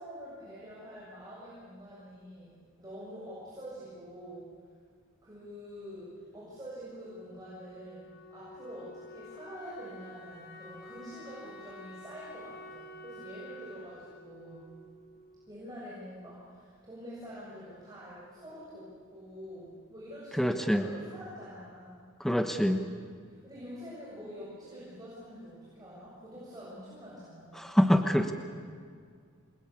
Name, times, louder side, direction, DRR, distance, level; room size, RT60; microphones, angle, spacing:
voice 1, 0.0-4.5 5.2-14.7 15.5-22.0 23.3-27.8, equal, 15° right, -8 dB, 7.3 m, -46 dB
Wind instrument woodwind instrument, 7.0-15.7, equal, 50° left, 6.1 m, -49 dB
voice 2, 20.4-20.8 22.2-22.8 27.6-28.3, equal, ahead, 6 dB, 1.1 m, -25 dB
28.0 x 21.5 x 8.6 m, 2.1 s
head